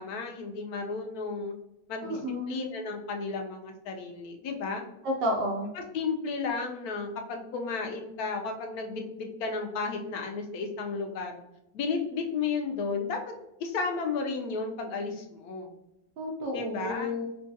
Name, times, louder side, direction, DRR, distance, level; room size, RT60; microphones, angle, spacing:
voice 1, 0.0-1.5 1.9-2.2 2.5-4.8 5.7-11.4 11.7-13.2 13.6-15.7 16.5-17.2, left 4 dB, 80° left, 3 dB, 1.1 m, -33 dB
voice 2, 2.0-2.5 5.0-5.7 16.2-17.3, left 1 dB, 60° right, 0 dB, 0.6 m, -31 dB
4.4 x 2.3 x 2.7 m, 0.88 s
omnidirectional pair, 1.6 m